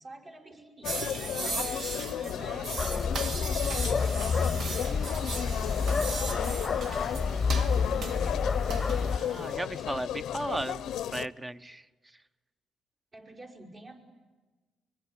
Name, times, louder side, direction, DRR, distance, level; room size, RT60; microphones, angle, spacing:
voice 1, 0.0-3.2 3.6-7.1 7.7-8.5 13.1-14.0, right 2 dB, 40° right, 2 dB, 6.0 m, -48 dB
sound 1, 0.8-11.3, left 11 dB, 80° left, 0.8 m, -34 dB
sound 2, 0.8-9.6, right 3 dB, 65° right, 2.7 m, -38 dB
sound 3, 2.8-9.2, left 5 dB, 30° left, 0.9 m, -29 dB
voice 2, 9.1-11.8, right 1 dB, 15° right, 12 dB, 1.1 m, -36 dB
25.0 x 23.0 x 9.9 m, 1.2 s
cardioid pair, 90°, 0 cm